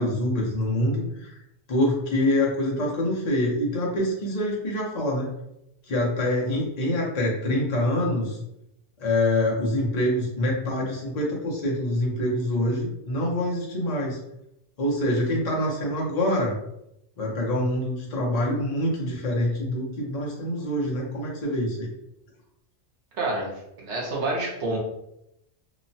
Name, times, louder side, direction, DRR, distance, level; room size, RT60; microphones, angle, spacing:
voice 1, 0.0-1.4 1.7-5.3 5.9-8.4 9.0-14.2 14.8-16.5 17.2-21.9, left 1 dB, 40° left, -3 dB, 0.7 m, -25 dB
voice 2, 23.2-23.5 23.8-24.8, right 2 dB, 70° right, -2 dB, 1.1 m, -27 dB
2.9 x 2.1 x 2.6 m, 0.83 s
omnidirectional pair, 1.2 m